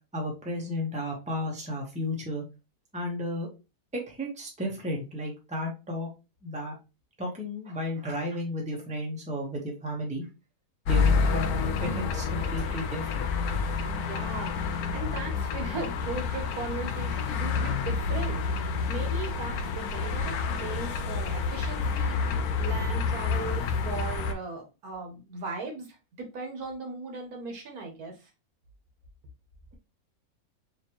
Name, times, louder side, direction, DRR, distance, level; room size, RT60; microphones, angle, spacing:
voice 1, 0.1-2.4 2.9-3.5 3.9-6.1 6.4-6.8 7.2-10.2 10.9-11.4 11.8-13.3, left 1 dB, 5° right, -1 dB, 0.9 m, -33 dB
sound 1, 10.9-24.3, left 5 dB, 85° left, 1.1 m, -29 dB
voice 2, 13.9-22.3 22.6-28.1, right 4 dB, 80° right, 3 dB, 1.6 m, -38 dB
4.4 x 2.9 x 2.9 m, 0.28 s
omnidirectional pair, 1.6 m